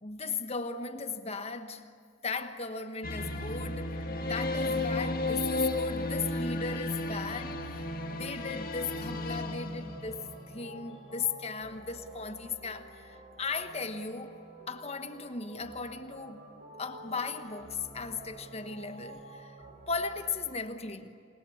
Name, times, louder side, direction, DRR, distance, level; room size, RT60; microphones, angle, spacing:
voice 1, 0.0-1.9 2.2-7.8 8.1-14.4 14.7-16.4 16.8-19.6 19.9-21.2, left 4 dB, 35° left, 1.3 m, -37 dB
sound 1, 3.0-10.5, left 2 dB, 50° left, 1.8 m, -33 dB
sound 2, 7.6-20.6, right 1 dB, 60° right, 7.2 m, -50 dB
28.0 x 21.0 x 8.6 m
head